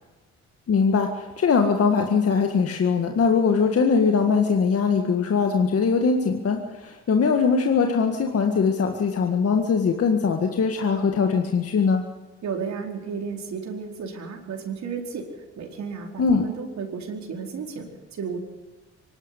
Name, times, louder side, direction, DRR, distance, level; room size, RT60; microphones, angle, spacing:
voice 1, 0.7-12.0 16.2-16.5, left 5 dB, 50° left, 4 dB, 1.9 m, -21 dB
voice 2, 12.4-18.4, right 5 dB, 65° right, 1 dB, 4.6 m, -33 dB
24.5 x 12.5 x 9.9 m, 1.2 s
cardioid pair, 90°, 30 cm